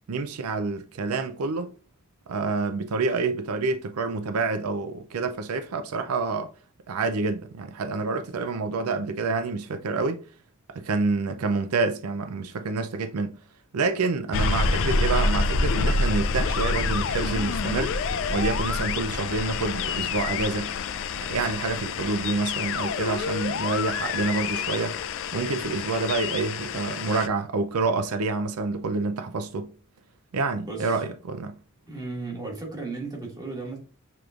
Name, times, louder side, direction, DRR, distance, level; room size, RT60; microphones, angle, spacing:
voice 1, 0.1-1.7 2.3-6.5 6.9-10.2 10.7-13.3 13.7-17.9 18.3-20.7 21.2-25.0 25.3-29.7 30.3-31.5, right 3 dB, 90° right, 0.5 m, -27 dB
sound 1, 14.3-27.3, left 4 dB, 65° left, 0.4 m, -27 dB
voice 2, 30.6-31.0 31.9-33.8, right 3 dB, 20° right, 1.6 m, -35 dB
6.9 x 3.0 x 2.4 m
head